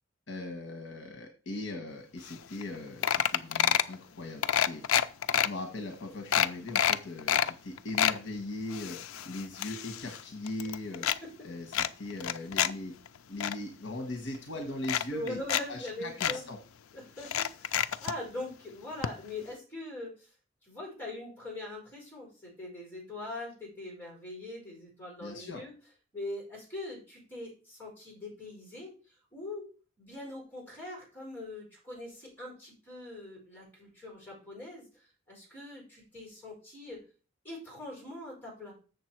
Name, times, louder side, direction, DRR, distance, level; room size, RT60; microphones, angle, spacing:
voice 1, 0.3-5.0 5.3-9.0 9.2-11.1 11.4-12.9 13.3-15.4 15.7-16.6 25.2-25.6, left 2 dB, 60° left, 3 dB, 1.3 m, -39 dB
sound 1, 2.3-2.4 2.6-2.8 3.0-3.9 4.4-5.5 5.9-6.0 6.3-7.5 7.8-8.2 8.7-10.2 10.5-11.2 11.7-12.7 13.1-13.5 14.3-14.4 14.8-15.6 15.9-16.0 16.2-16.4 17.2-18.2 19.0-19.1 19.4-19.5, left 9 dB, 85° left, 0.5 m, -28 dB
voice 2, 11.0-11.5 15.1-16.5 16.9-20.3 20.6-25.7 26.1-29.7 30.0-37.0 37.4-38.7, left 1 dB, 10° left, -4 dB, 5.5 m, -42 dB
7.3 x 6.9 x 4.6 m, 0.37 s
head